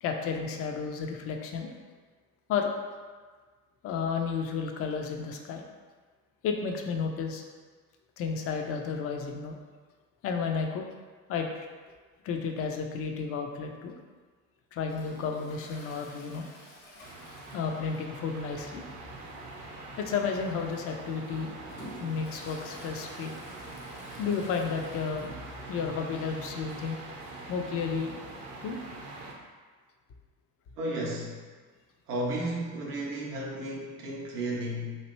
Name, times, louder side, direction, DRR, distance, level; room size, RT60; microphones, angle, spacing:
voice 1, 0.0-1.7 2.5-2.7 3.8-5.6 6.4-7.4 8.2-9.6 10.2-10.8 11.3-11.7 12.2-13.9 14.7-16.5 17.5-18.9 20.0-21.5 22.0-23.3 24.2-25.4 25.7-27.0 27.5-28.1 28.6-28.8, left 5 dB, 35° left, 3 dB, 0.4 m, -32 dB
Toilet flush, 14.8-18.3 18.6-18.7 19.1-19.2 20.0-20.2 20.7-25.6 25.9-26.0 26.2-26.3 27.4-27.5, left 1 dB, 70° left, 1.0 m, -50 dB
sound 1, 17.0-29.3, right 2 dB, 50° right, 0.8 m, -43 dB
voice 2, 30.8-31.3 32.1-35.0, right 1 dB, 85° right, -2 dB, 0.7 m, -33 dB
3.0 x 2.5 x 2.9 m, 1.5 s
figure-of-eight pair, 60°, 45 cm